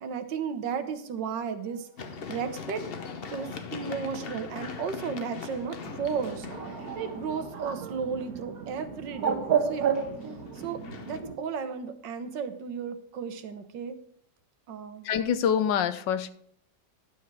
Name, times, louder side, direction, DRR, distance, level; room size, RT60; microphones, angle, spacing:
voice 1, 0.0-2.8 3.3-6.5 7.0-9.9 10.5-10.8 11.1-14.0 14.7-15.1, right 6 dB, 80° right, 10 dB, 1.7 m, -34 dB
Run, 2.0-7.8 9.7-11.2, left 5 dB, 45° left, 0.8 m, -41 dB
Bird, 5.8-11.4, right 7 dB, 55° right, 1.6 m, -32 dB
voice 2, 15.0-16.3, left 8 dB, 85° left, 12 dB, 1.5 m, -25 dB
11.5 x 7.4 x 4.7 m, 0.65 s
omnidirectional pair, 1.9 m